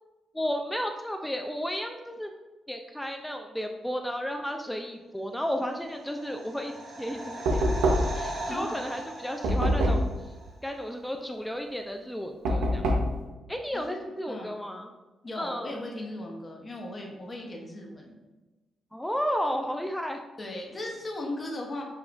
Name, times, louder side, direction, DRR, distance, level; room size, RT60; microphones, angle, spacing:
voice 1, 0.3-2.3 2.7-10.1 10.6-12.8 13.5-14.9 15.4-15.8 18.9-20.2, equal, 5° left, 4 dB, 0.3 m, -33 dB
sound 1, 5.6-10.5 10.8-10.9, right 1 dB, 75° right, 1.5 m, -39 dB
Knock, 7.5-8.3 9.4-10.2 12.5-13.2, equal, 90° right, 0.6 m, -24 dB
voice 2, 13.7-14.6 15.2-18.1 20.4-21.8, left 1 dB, 30° left, 0 dB, 0.9 m, -37 dB
6.7 x 2.3 x 2.5 m, 1.2 s
cardioid pair, 95°, 0 cm